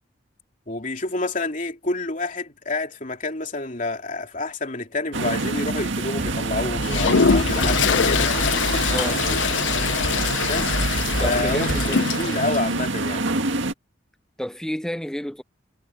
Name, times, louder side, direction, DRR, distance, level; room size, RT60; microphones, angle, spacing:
voice 1, 0.7-8.4 10.4-10.8 11.2-13.2, left 2 dB, 40° left, 3.1 m, -28 dB
sound 1, 5.1-13.7, right 3 dB, 80° right, 1.9 m, -27 dB
sound 2, 6.1-11.9, equal, 40° right, 2.2 m, -29 dB
Toilet flush, 6.8-12.6, left 6 dB, 75° left, 0.7 m, -23 dB
voice 2, 8.9-9.2 11.2-12.0 14.4-15.4, equal, 5° left, 0.4 m, -30 dB
head